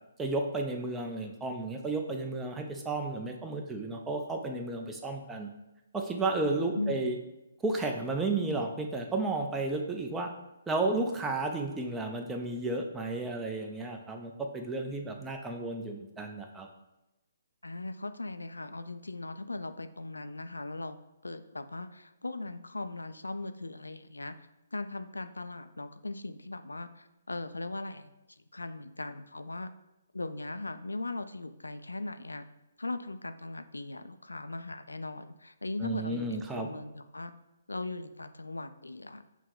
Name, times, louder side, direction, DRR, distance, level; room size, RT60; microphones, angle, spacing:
voice 1, 0.2-5.5 5.9-7.2 7.6-10.3 10.7-16.7 35.8-36.7, right 2 dB, 10° right, 3 dB, 0.5 m, -32 dB
voice 2, 6.7-7.1 17.6-21.0 21.2-24.4 24.7-28.1 28.5-29.7 30.1-32.5 32.8-37.3 37.7-39.2, left 2 dB, 90° left, 10 dB, 0.3 m, -39 dB
5.8 x 2.1 x 3.8 m, 0.96 s
figure-of-eight pair, 135°, 0 cm